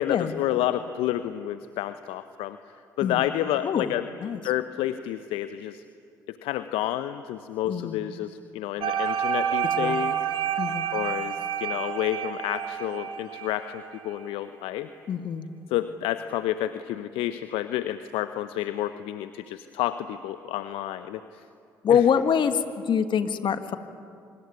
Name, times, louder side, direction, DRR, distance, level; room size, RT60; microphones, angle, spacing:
voice 1, 0.0-2.6 3.0-4.1 4.4-5.8 6.3-10.2 10.9-14.9 15.7-21.4 21.9-22.0, left 13 dB, 70° left, 11 dB, 0.8 m, -30 dB
voice 2, 7.6-8.0 9.8-10.0 10.6-10.9 15.1-15.5 21.8-23.8, left 7 dB, 55° left, 9 dB, 1.8 m, -24 dB
sound 1, 8.8-13.9, right 9 dB, 60° right, 2.5 m, -29 dB
25.0 x 24.5 x 9.7 m, 2.5 s
hypercardioid pair, 50°, 10 cm